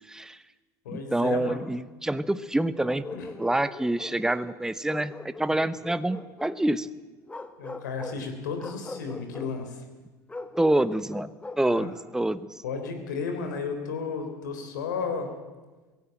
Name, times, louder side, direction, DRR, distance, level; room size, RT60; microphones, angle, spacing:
voice 1, 0.1-0.4 0.9-3.0 3.4-5.1 5.4-6.9 10.6-12.6, right 1 dB, 5° right, 14 dB, 0.8 m, -27 dB
voice 2, 0.9-1.7 3.1-3.3 7.6-9.8 11.6-11.9 12.6-15.3, left 5 dB, 85° left, 6 dB, 3.5 m, -33 dB
Bark, 2.8-4.4 4.9-6.6 7.2-8.2 8.6-9.5 10.3-12.0, left 2 dB, 15° left, 1.4 m, -41 dB
18.0 x 16.0 x 8.9 m, 1.2 s
hypercardioid pair, 80°, 10 cm